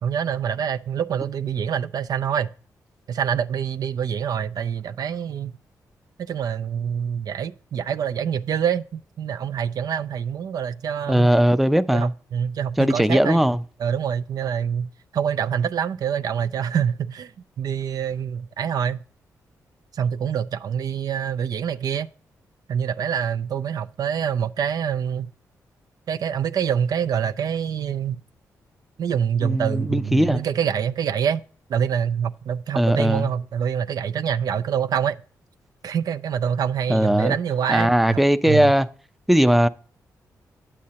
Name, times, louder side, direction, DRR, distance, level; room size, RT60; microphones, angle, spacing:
voice 1, 0.0-2.5 3.1-5.6 6.2-11.3 11.9-13.5 13.8-17.3 17.6-19.0 19.9-22.1 22.7-25.3 26.1-28.2 29.0-31.4 31.7-35.2 35.8-38.2 38.5-38.7, right 8 dB, 65° right, 0.4 m, -26 dB
voice 2, 11.1-12.1 12.8-13.6 29.4-30.4 32.8-33.3 36.9-37.4 37.7-38.9 39.3-39.7, equal, ahead, 0.4 m, -19 dB
8.4 x 7.5 x 2.9 m
supercardioid pair, 55°, 7 cm